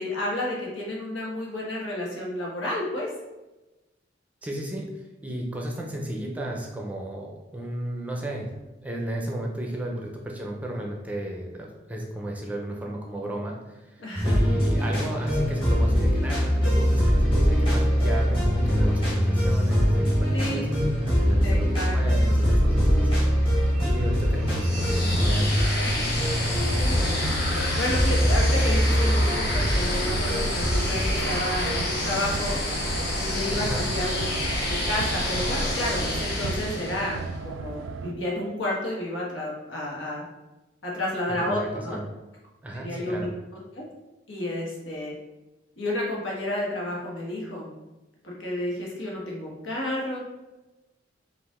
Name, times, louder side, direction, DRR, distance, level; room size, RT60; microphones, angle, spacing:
voice 1, 0.0-3.1 14.0-14.4 20.3-20.7 21.4-22.0 22.2-22.3 26.8-27.2 27.7-32.6 33.2-34.2 34.7-40.2 40.8-42.0 42.8-43.3 43.7-43.8 44.3-45.1 45.8-47.7 48.2-50.2, left 1 dB, 85° left, -3 dB, 1.3 m, -31 dB
voice 2, 4.4-8.5 8.8-25.6 33.5-33.9 41.3-42.1 42.6-43.3, right 1 dB, 10° right, -1 dB, 0.5 m, -34 dB
sound 1, 14.1-31.7, equal, 30° left, 1.5 m, -23 dB
sound 2, 18.3-38.1, right 4 dB, 90° right, 0.3 m, -36 dB
sound 3, 24.5-37.3, left 1 dB, 55° left, 1.1 m, -29 dB
5.0 x 2.5 x 3.5 m, 1.0 s
head